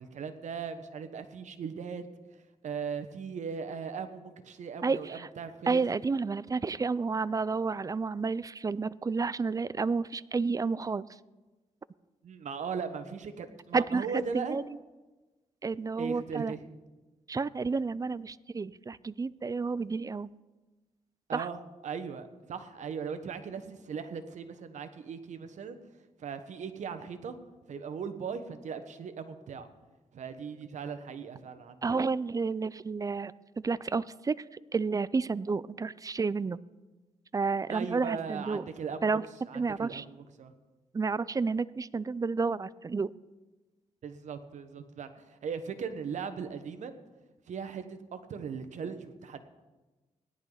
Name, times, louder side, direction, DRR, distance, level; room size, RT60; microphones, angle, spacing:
voice 1, 0.0-2.0 2.6-5.8 12.2-14.6 16.0-16.6 21.3-25.8 26.2-27.3 27.7-29.7 30.1-32.0 37.7-39.2 39.5-40.5 44.0-46.9 47.5-49.4, right 6 dB, 75° right, 9 dB, 1.2 m, -38 dB
voice 2, 4.8-5.3 5.7-11.1 13.7-14.1 14.3-14.6 15.6-16.5 17.3-20.3 21.3-21.5 31.8-33.3 33.6-34.4 34.7-36.6 37.3-38.6 39.0-39.2 39.5-40.0 40.9-43.1, right 4 dB, 30° right, 19 dB, 0.5 m, -30 dB
18.0 x 11.0 x 4.0 m, 1.2 s
cardioid pair, 65°, 12 cm